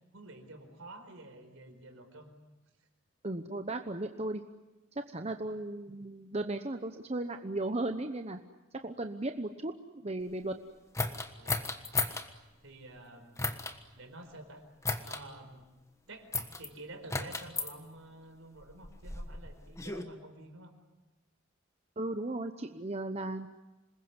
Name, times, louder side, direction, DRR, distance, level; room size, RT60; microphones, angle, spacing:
voice 1, 0.1-2.3 5.3-5.4 11.4-11.7 12.6-13.4 13.9-14.6 15.0-15.6 16.1-20.7, right 2 dB, 70° right, 6 dB, 4.7 m, -50 dB
voice 2, 3.2-4.4 5.1-8.4 8.8-9.7 10.0-10.6 22.0-23.5, right 2 dB, 30° right, 6 dB, 0.9 m, -36 dB
sound 1, 10.9-12.3 13.4-13.8 14.8-15.2 16.3-16.7 17.1-17.7 18.6-20.0, left 3 dB, 15° left, 1.4 m, -34 dB
27.0 x 21.0 x 9.7 m, 1.1 s
head